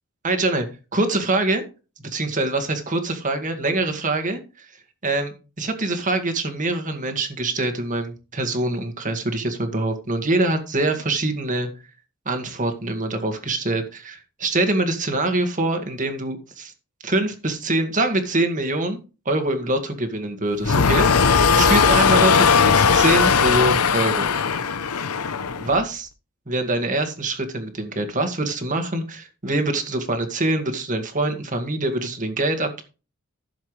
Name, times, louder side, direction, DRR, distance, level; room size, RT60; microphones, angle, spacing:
voice 1, 0.2-0.7 0.9-1.6 2.0-4.7 5.0-11.7 12.3-16.7 17.0-19.0 19.3-21.1 21.5-24.3 25.6-26.1 26.5-32.8, right 2 dB, 35° right, 6 dB, 2.0 m, -24 dB
sound 1, 20.6-25.8, left 5 dB, 85° left, 0.8 m, -18 dB
15.0 x 7.2 x 3.3 m, 0.32 s
head